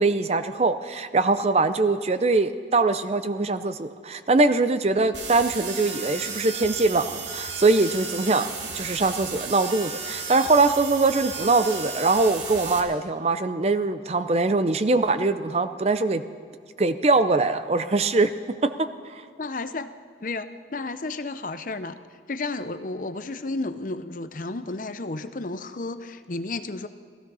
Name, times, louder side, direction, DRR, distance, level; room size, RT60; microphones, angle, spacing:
voice 1, 0.0-16.2 16.8-18.3 18.6-19.2, right 3 dB, 35° right, 10 dB, 0.5 m, -22 dB
sound 1, 5.1-12.8, right 5 dB, 80° right, 1.9 m, -34 dB
voice 2, 19.4-19.9 20.2-22.0 22.3-26.9, left 2 dB, 45° left, 11 dB, 0.7 m, -32 dB
15.5 x 15.5 x 5.5 m, 2.1 s
head